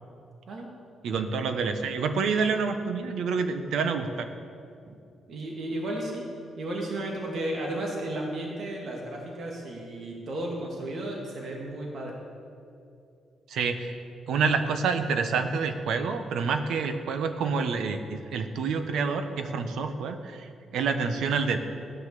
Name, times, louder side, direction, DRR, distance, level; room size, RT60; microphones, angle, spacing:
voice 1, 1.0-4.3 13.5-14.0 14.3-21.6, right 5 dB, 75° right, 8 dB, 1.1 m, -28 dB
voice 2, 5.3-6.2 6.6-12.2, right 1 dB, 55° right, -1 dB, 2.3 m, -33 dB
16.0 x 10.0 x 6.9 m, 2.6 s
cardioid pair, 135°, 0 cm